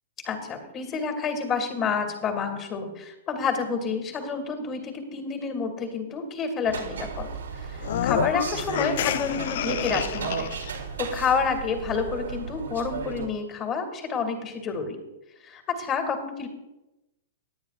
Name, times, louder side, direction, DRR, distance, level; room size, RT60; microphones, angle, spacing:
voice 1, 0.2-7.3 7.7-7.8 8.0-10.5 11.0-15.0 15.4-16.5, left 5 dB, 35° left, 4 dB, 2.5 m, -29 dB
sound 1, 6.6-13.3, right 5 dB, 80° right, 2.3 m, -34 dB
sound 2, 7.8-10.8, left 11 dB, 60° left, 0.3 m, -29 dB
21.0 x 8.9 x 2.5 m, 0.98 s
hypercardioid pair, 115°, 0 cm